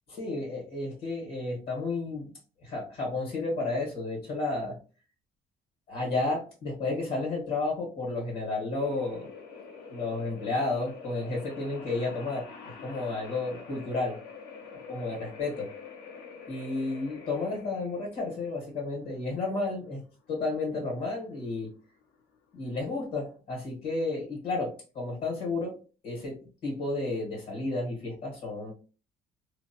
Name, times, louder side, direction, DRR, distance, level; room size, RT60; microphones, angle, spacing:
voice 1, 0.1-2.3 2.6-4.8 5.9-9.3 9.9-14.2 14.9-15.7 16.5-20.0 20.3-21.7 22.5-25.7 26.0-26.4 26.6-28.7, left 3 dB, 70° left, -3 dB, 1.5 m, -32 dB
sound 1, 8.7-23.3, left 5 dB, 85° left, 0.7 m, -46 dB
2.7 x 2.2 x 2.7 m, 0.36 s
cardioid pair, 160°, 17 cm